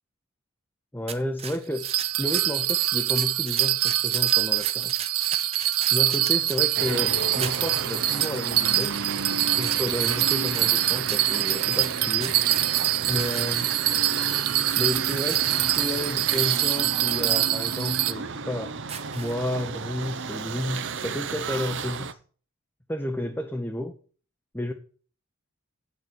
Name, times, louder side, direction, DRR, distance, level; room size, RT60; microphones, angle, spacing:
voice 1, 0.9-1.9 2.2-5.0 5.9-9.0 9.6-12.4 13.0-13.7 14.8-18.7 19.1-22.1 22.9-23.9 24.5-24.7, left 1 dB, 10° left, 4 dB, 0.8 m, -31 dB
sound 1, 1.1-7.0 7.4-7.8 8.2-8.4 8.7-9.2 9.6-14.1 14.6-15.9 16.3-16.6 17.1-17.4 17.9-18.0 18.8-19.6 20.0-20.1, right 7 dB, 30° right, 0.9 m, -39 dB
Bell, 1.8-18.1, right 14 dB, 90° right, 0.7 m, -25 dB
sound 2, 6.8-22.1, right 5 dB, 55° right, 0.8 m, -33 dB
8.7 x 6.7 x 6.1 m, 0.41 s
head